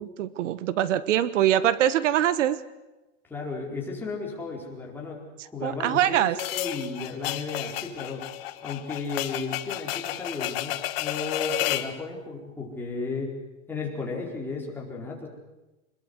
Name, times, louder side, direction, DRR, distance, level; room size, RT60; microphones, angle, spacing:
voice 1, 0.0-2.6 5.6-6.4, right 11 dB, 80° right, 15 dB, 1.4 m, -23 dB
voice 2, 3.3-8.3 8.6-13.3 13.7-15.3, left 3 dB, 5° left, -3 dB, 4.5 m, -34 dB
sound 1, 6.4-11.9, left 15 dB, 50° left, 1.6 m, -31 dB
26.5 x 21.0 x 8.0 m, 1.0 s
supercardioid pair, 175°, 36 cm